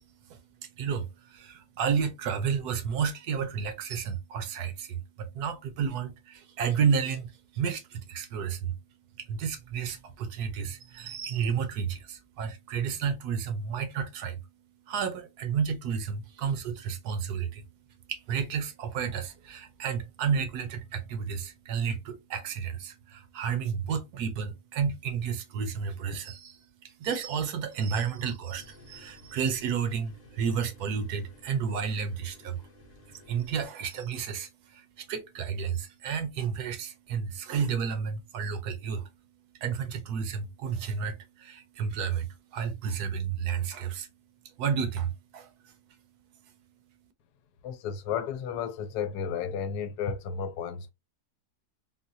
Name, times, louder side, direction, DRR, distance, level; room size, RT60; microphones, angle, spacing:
voice 1, 0.0-32.7 33.1-46.0 46.3-46.7, right 6 dB, 75° right, 1.2 m, -32 dB
sound 1, 28.5-33.6, left 1 dB, 35° left, 0.7 m, -54 dB
voice 2, 47.6-50.9, left 7 dB, 80° left, 1.1 m, -33 dB
3.8 x 2.2 x 2.6 m
omnidirectional pair, 1.7 m